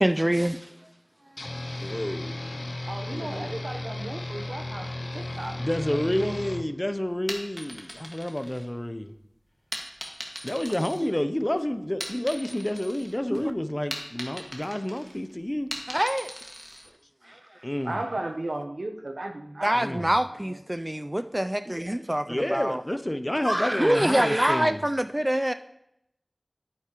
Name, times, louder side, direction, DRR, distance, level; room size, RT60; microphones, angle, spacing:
voice 1, 0.0-0.7 1.6-1.7 13.3-13.5 15.9-16.4 17.3-17.4 19.6-22.8 23.4-25.5, right 1 dB, 25° right, 0.3 m, -25 dB
sound 1, 1.4-6.6, left 1 dB, 75° left, 0.5 m, -35 dB
voice 2, 1.8-2.7 3.1-3.5 5.6-9.1 10.4-15.7 17.6-18.0 19.7-20.1 22.3-24.8, left 1 dB, 25° left, 0.5 m, -29 dB
voice 3, 2.9-4.9 5.1-5.6 5.8-6.4 10.7-11.1 17.8-20.6 20.9-21.1, right 2 dB, 90° right, 0.8 m, -36 dB
sound 2, 7.1-9.1 9.7-11.5 11.8-13.2 13.5-16.9, equal, 5° right, 1.6 m, -39 dB
9.3 x 8.5 x 2.9 m
wide cardioid pair, 40°, 0 cm